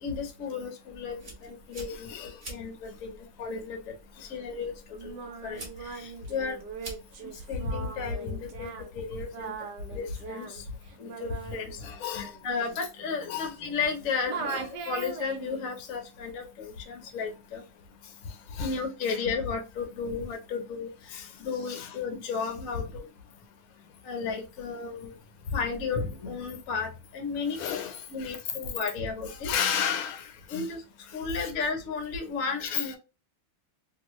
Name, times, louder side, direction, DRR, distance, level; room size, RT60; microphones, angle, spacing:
voice 1, 0.0-3.8 4.2-4.7 5.0-5.2 5.4-6.6 7.5-9.5 9.9-10.6 11.0-11.8 12.1-17.6 18.6-23.1 24.0-25.1 25.5-27.8 28.1-29.5 30.5-30.8 31.1-33.0, left 5 dB, 55° left, 1.1 m, -33 dB
sound 1, 0.9-7.7, right 2 dB, 30° right, 0.9 m, -48 dB
voice 2, 1.9-2.4 4.1-4.4 11.8-12.4 13.3-13.5 14.4-14.7 18.0-18.8 21.1-21.4 21.7-21.9 27.5-28.5 29.3-30.7 31.1-31.5 32.6-32.9, left 8 dB, 90° left, 1.5 m, -34 dB
Singing, 4.9-14.0 14.3-15.7, right 5 dB, 65° right, 1.2 m, -40 dB
3.1 x 2.9 x 3.0 m
omnidirectional pair, 2.2 m